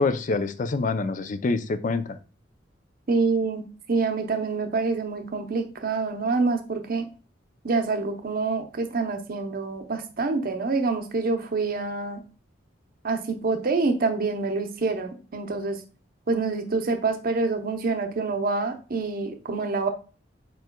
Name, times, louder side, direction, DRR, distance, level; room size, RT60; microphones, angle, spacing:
voice 1, 0.0-2.2, left 3 dB, 45° left, 10 dB, 0.5 m, -26 dB
voice 2, 3.1-7.1 7.6-12.2 13.0-15.8 16.3-19.9, right 4 dB, 50° right, 6 dB, 0.7 m, -26 dB
4.8 x 4.6 x 2.2 m, 0.36 s
head